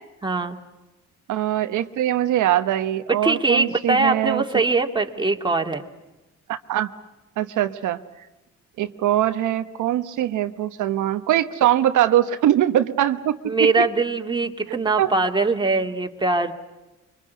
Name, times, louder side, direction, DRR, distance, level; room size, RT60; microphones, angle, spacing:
voice 1, 0.2-0.6 3.1-5.8 13.4-16.5, right 3 dB, 15° right, 3 dB, 2.5 m, -22 dB
voice 2, 1.3-4.4 6.5-6.9 7.4-8.0 8.8-13.8 15.0-15.1, right 12 dB, 80° right, 8 dB, 1.1 m, -22 dB
24.5 x 24.0 x 9.4 m, 1.0 s
cardioid pair, 90°, 30 cm